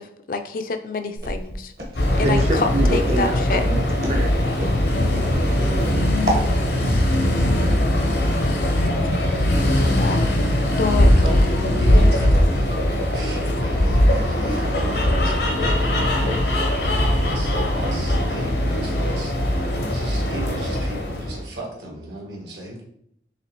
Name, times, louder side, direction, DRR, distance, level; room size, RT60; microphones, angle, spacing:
voice 1, 0.0-1.7 2.2-3.7 8.4-8.6 9.8-10.3 10.8-11.5, left 3 dB, 50° left, 8 dB, 0.4 m, -27 dB
Walk footsteps, 1.2-6.5, right 1 dB, 60° right, 1.1 m, -30 dB
sound 1, 2.0-21.5, left 1 dB, 75° left, 0.7 m, -20 dB
voice 2, 2.2-4.4 21.3-21.6 22.5-22.8, right 1 dB, 35° right, 0 dB, 0.4 m, -29 dB
voice 3, 11.2-16.7 17.1-19.3 19.9-22.8, right 1 dB, 85° right, -2 dB, 1.5 m, -35 dB
4.9 x 3.3 x 3.0 m, 0.71 s
head